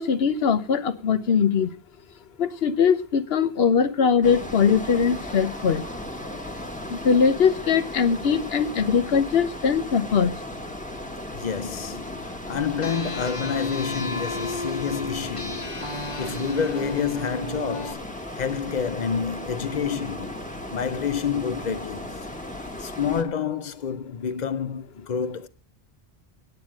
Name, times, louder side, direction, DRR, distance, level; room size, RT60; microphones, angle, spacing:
voice 1, 0.0-1.7 2.4-5.8 6.9-10.3, left 6 dB, 75° left, 1.1 m, -21 dB
sound 1, 4.2-23.2, left 1 dB, 5° left, 1.3 m, -36 dB
voice 2, 11.3-20.4 20.7-22.3 22.8-25.5, left 7 dB, 50° left, 0.7 m, -29 dB
sound 2, 12.8-17.9, left 1 dB, 30° left, 1.1 m, -34 dB
9.3 x 8.9 x 7.4 m
omnidirectional pair, 1.1 m